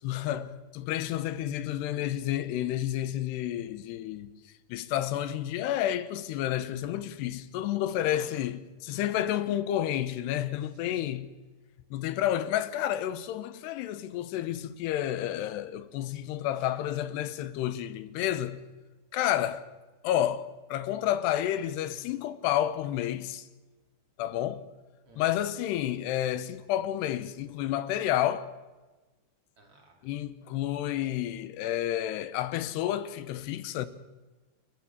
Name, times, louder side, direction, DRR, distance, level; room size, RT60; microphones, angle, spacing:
voice 1, 0.0-4.3 4.7-11.3 11.9-18.6 19.1-19.6 20.0-23.5 24.2-24.6 25.2-28.5 30.0-33.9, left 12 dB, 85° left, 3.1 m, -30 dB
voice 2, 10.6-11.1 25.1-25.6 29.6-30.1, right 1 dB, 35° right, 3.6 m, -55 dB
30.0 x 14.0 x 7.3 m
omnidirectional pair, 4.7 m